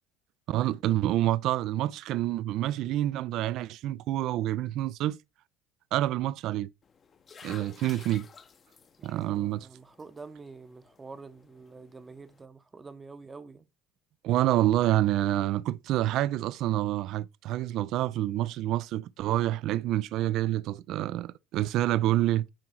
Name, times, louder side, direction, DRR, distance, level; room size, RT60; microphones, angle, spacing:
voice 1, 0.5-5.2 5.9-6.7 7.4-8.3 9.0-9.7 14.2-22.5, right 14 dB, 55° right, 0.4 m, -27 dB
sound 1, 6.8-12.5, left 6 dB, 30° left, 0.7 m, -53 dB
voice 2, 9.0-13.7, right 4 dB, 20° right, 0.8 m, -47 dB
7.7 x 4.7 x 4.4 m
figure-of-eight pair, 60°, 0 cm